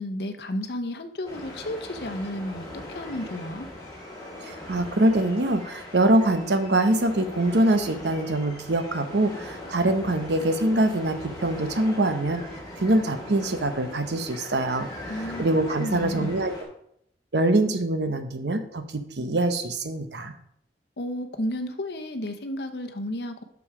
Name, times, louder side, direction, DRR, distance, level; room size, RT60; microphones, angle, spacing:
voice 1, 0.0-3.7 15.1-15.5 15.8-16.4 21.0-23.4, left 1 dB, 65° left, 7 dB, 0.8 m, -32 dB
sound 1, 1.2-16.6, left 1 dB, 25° left, 2.4 m, -40 dB
voice 2, 4.4-12.4 12.8-14.9 15.4-16.5 17.3-20.3, right 1 dB, 75° right, 8 dB, 0.8 m, -24 dB
6.2 x 6.0 x 4.8 m, 0.72 s
head